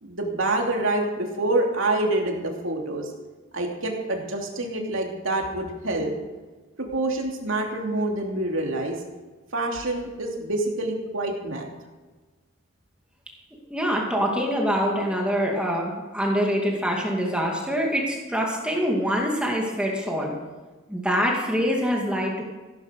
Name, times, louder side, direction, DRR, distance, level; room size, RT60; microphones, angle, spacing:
voice 1, 0.0-3.1 3.5-6.1 6.8-9.0 9.5-11.7, right 2 dB, 70° right, 1 dB, 2.9 m, -26 dB
voice 2, 13.7-20.4 20.9-22.4, equal, 5° right, -1 dB, 2.4 m, -25 dB
16.5 x 10.5 x 6.4 m, 1.3 s
head